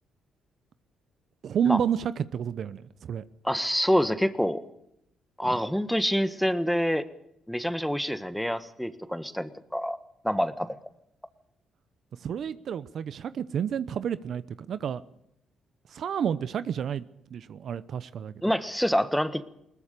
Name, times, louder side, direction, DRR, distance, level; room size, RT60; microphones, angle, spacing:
voice 1, 1.4-3.2 5.4-5.6 12.2-14.4 14.7-15.0 15.9-18.3, right 8 dB, 60° right, 15 dB, 0.8 m, -30 dB
voice 2, 3.4-4.6 5.4-7.1 7.5-10.0 10.2-10.7 18.4-19.5, equal, ahead, 12 dB, 1.5 m, -26 dB
21.0 x 19.5 x 6.8 m, 0.79 s
cardioid pair, 90°, 0 cm